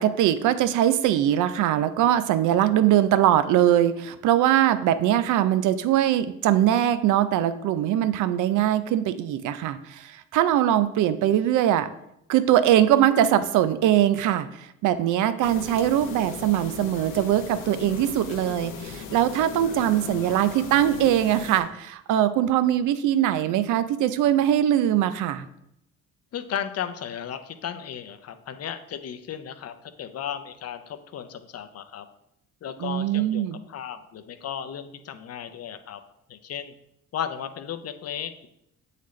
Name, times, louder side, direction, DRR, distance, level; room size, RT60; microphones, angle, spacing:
voice 1, 0.0-11.9 12.3-14.5 14.8-25.5 32.8-33.6, right 11 dB, 75° right, 12 dB, 0.5 m, -22 dB
sound 1, 15.4-21.6, left 6 dB, 85° left, 1.0 m, -38 dB
voice 2, 26.3-32.0 32.6-36.0 36.3-36.7 37.1-38.5, left 9 dB, 55° left, 9 dB, 0.6 m, -35 dB
8.1 x 4.1 x 3.1 m, 0.78 s
cardioid pair, 90°, 30 cm